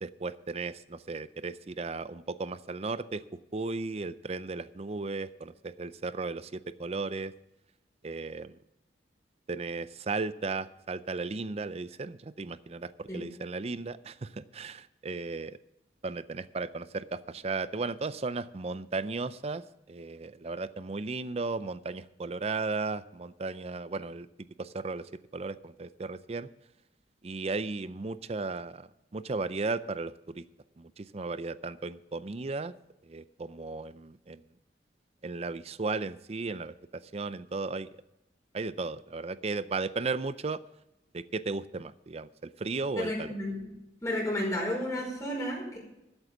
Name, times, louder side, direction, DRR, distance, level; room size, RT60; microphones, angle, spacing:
voice 1, 0.0-3.2 3.5-7.3 8.0-8.6 9.5-15.6 16.0-19.6 19.9-24.3 24.6-25.0 25.3-26.5 27.2-30.4 30.8-32.7 33.1-34.4 35.2-37.9 38.5-40.6 41.1-43.3, right 3 dB, 35° right, 15 dB, 0.5 m, -35 dB
voice 2, 43.0-43.7 44.0-45.8, left 1 dB, 15° left, -3 dB, 5.1 m, -32 dB
13.0 x 8.2 x 5.9 m, 0.89 s
head